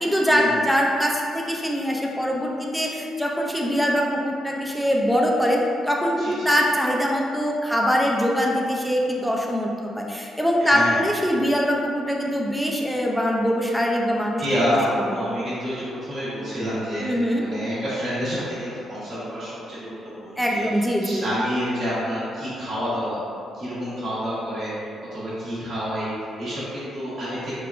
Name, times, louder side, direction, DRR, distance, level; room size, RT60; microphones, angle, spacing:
voice 1, 0.0-5.6 5.9-14.4 14.7-14.8 17.0-17.5 20.4-21.3, equal, ahead, -1 dB, 0.3 m, -23 dB
voice 2, 6.2-6.5 10.6-11.0 14.4-23.2 23.6-27.5, equal, 50° right, -11 dB, 1.0 m, -28 dB
3.4 x 2.2 x 2.4 m, 2.4 s
cardioid pair, 90°, 0 cm